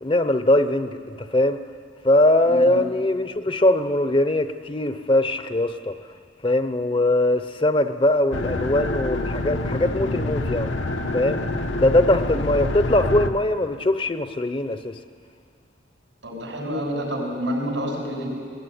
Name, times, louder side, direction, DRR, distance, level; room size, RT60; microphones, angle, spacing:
voice 1, 0.0-1.6 2.0-5.9 6.4-10.8 11.1-11.4 11.7-15.0, left 1 dB, 25° left, 10 dB, 0.7 m, -21 dB
voice 2, 2.5-2.8 16.2-18.3, equal, 90° right, -1 dB, 7.1 m, -28 dB
sound 1, 8.3-13.3, left 2 dB, 80° left, 1.2 m, -26 dB
19.5 x 19.0 x 10.0 m, 2.2 s
head